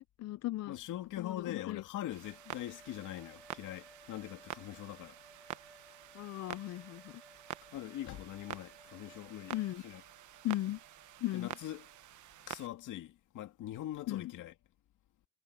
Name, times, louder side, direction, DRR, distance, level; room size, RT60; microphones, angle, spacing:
voice 1, 0.0-0.8 1.2-1.8 6.1-7.2 9.5-9.8 10.4-10.8 11.2-11.5 14.1-14.3, left 15 dB, 60° left, 0.4 m, -37 dB
voice 2, 0.7-5.2 7.7-10.0 11.3-11.9 12.5-14.5, left 13 dB, 85° left, 2.3 m, -42 dB
Clock, 2.1-12.7, right 13 dB, 75° right, 1.1 m, -49 dB
sound 1, 2.2-9.8, equal, ahead, 1.6 m, -61 dB
Bowed string instrument, 4.0-12.3, right 4 dB, 30° right, 7.7 m, -67 dB
cardioid pair, 90°, 30 cm